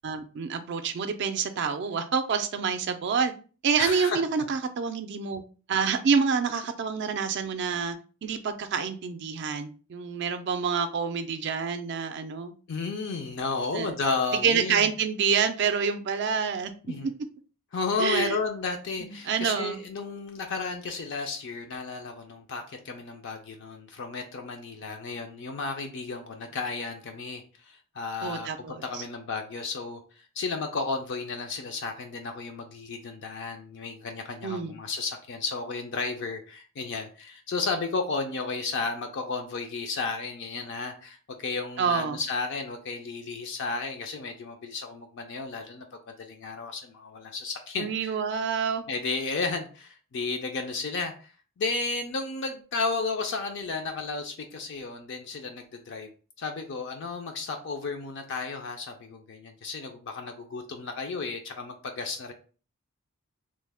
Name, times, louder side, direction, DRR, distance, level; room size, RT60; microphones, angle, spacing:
voice 1, 0.0-3.3 3.6-5.4 5.7-8.0 8.2-12.5 13.7-14.0 14.4-16.7 18.0-18.4 19.0-19.8 28.2-29.0 34.4-34.8 41.8-42.2 47.8-48.9, right 6 dB, 55° right, 9 dB, 0.3 m, -27 dB
voice 2, 3.8-4.2 12.7-14.9 16.9-17.1 17.7-30.0 30.4-48.1 48.9-56.1 56.4-62.3, left 4 dB, 55° left, 4 dB, 0.4 m, -33 dB
3.1 x 2.1 x 3.3 m, 0.38 s
head